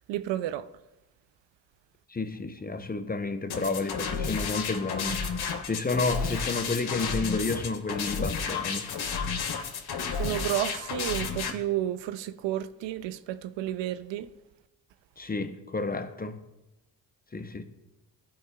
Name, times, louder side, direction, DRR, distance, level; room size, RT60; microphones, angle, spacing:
voice 1, 0.1-0.7 10.1-14.3, right 13 dB, 70° right, 0.5 m, -31 dB
voice 2, 2.1-5.2 5.6-8.9 15.2-16.4 17.3-17.6, left 3 dB, 20° left, 0.7 m, -31 dB
sound 1, 3.5-11.5, left 5 dB, 55° left, 1.0 m, -32 dB
12.5 x 4.7 x 2.3 m
hypercardioid pair, 45°, 47 cm